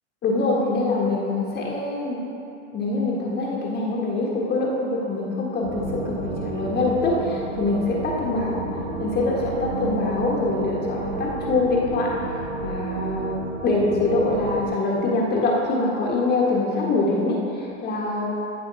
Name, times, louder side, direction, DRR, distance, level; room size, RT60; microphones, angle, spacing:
voice 1, 0.2-2.2 2.7-8.6 9.0-12.1 12.6-13.4 13.6-18.3, left 2 dB, 25° left, -3 dB, 1.4 m, -24 dB
sound 1, 5.6-14.7, right 3 dB, 50° right, 1.6 m, -31 dB
14.5 x 5.5 x 4.0 m, 2.9 s
hypercardioid pair, 125°, 38 cm